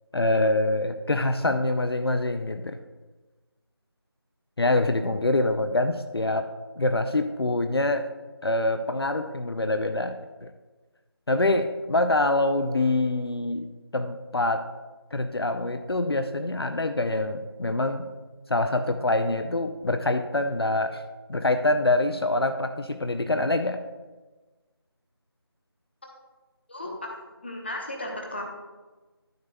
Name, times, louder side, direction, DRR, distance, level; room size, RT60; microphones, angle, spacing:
voice 1, 0.1-2.8 4.6-6.5 6.8-8.1 8.4-10.5 11.3-13.7 13.9-14.7 15.1-18.1 18.5-21.0 21.3-23.8, left 2 dB, 65° left, 8 dB, 0.6 m, -25 dB
voice 2, 26.7-27.1 27.4-28.4, left 1 dB, 25° left, 1 dB, 0.9 m, -35 dB
13.5 x 6.7 x 2.3 m, 1.2 s
figure-of-eight pair, 175°, 14 cm